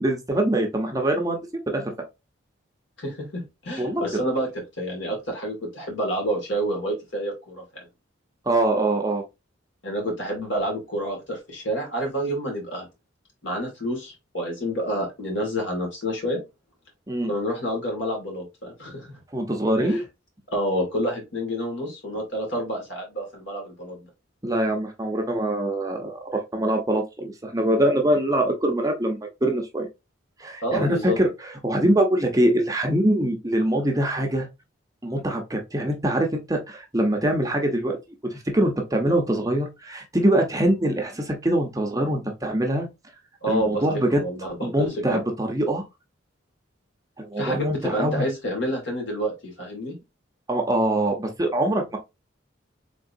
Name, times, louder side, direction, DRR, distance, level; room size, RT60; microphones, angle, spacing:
voice 1, 0.0-1.4 1.7-1.9 3.8-4.0 8.5-9.2 17.1-17.3 19.3-20.0 24.4-29.9 30.4-31.3 31.6-34.5 35.0-38.0 38.2-42.9 43.5-44.2 44.6-45.8 47.2-48.2 50.5-52.0, right 1 dB, 15° right, 0.7 m, -23 dB
voice 2, 3.0-4.5 4.8-7.9 9.8-12.9 13.4-16.4 17.3-19.2 19.8-20.0 20.5-24.0 30.6-31.2 43.4-43.8 44.1-45.2 47.4-50.0, equal, 65° left, 2.0 m, -28 dB
3.8 x 3.7 x 2.6 m
head